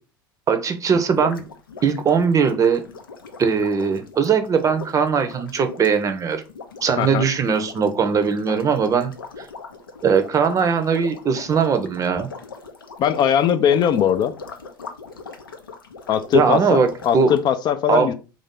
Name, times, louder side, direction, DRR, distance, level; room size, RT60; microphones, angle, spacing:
voice 1, 0.5-1.4 1.8-2.8 3.4-6.4 6.8-9.1 9.4-9.5 10.0-12.3 16.3-17.3 17.9-18.1, right 6 dB, 30° right, 8 dB, 0.6 m, -20 dB
sound 1, 1.1-17.4, left 4 dB, 90° left, 0.6 m, -39 dB
voice 2, 13.0-14.3 16.1-18.1, left 9 dB, 40° left, 10 dB, 0.4 m, -20 dB
3.4 x 2.6 x 3.6 m, 0.33 s
hypercardioid pair, 75°, 11 cm